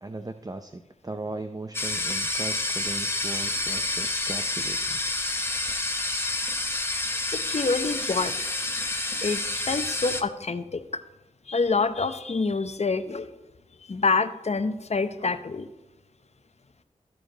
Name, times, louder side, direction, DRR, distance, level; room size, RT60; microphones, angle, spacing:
voice 1, 0.0-5.0, right 2 dB, 25° right, 8 dB, 0.6 m, -38 dB
sound 1, 1.7-10.2, left 2 dB, 15° left, 1.0 m, -29 dB
voice 2, 7.5-8.3 9.2-10.8 11.5-13.3 13.9-15.7, left 4 dB, 50° left, 10 dB, 0.8 m, -26 dB
14.0 x 4.8 x 3.9 m, 1.1 s
cardioid pair, 40°, 14 cm